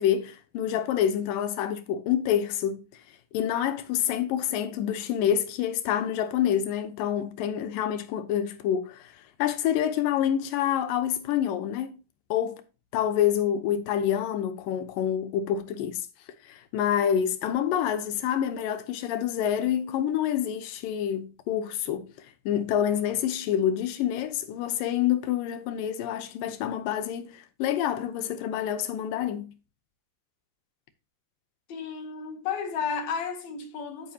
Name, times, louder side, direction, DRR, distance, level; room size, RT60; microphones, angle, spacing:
voice 1, 0.0-2.8 3.3-9.1 9.4-12.0 12.3-12.6 12.9-16.0 16.5-22.1 22.5-29.5, left 10 dB, 85° left, 2.5 m, -27 dB
voice 2, 31.7-34.1, left 6 dB, 65° left, 2.1 m, -32 dB
10.0 x 8.4 x 2.8 m
omnidirectional pair, 3.9 m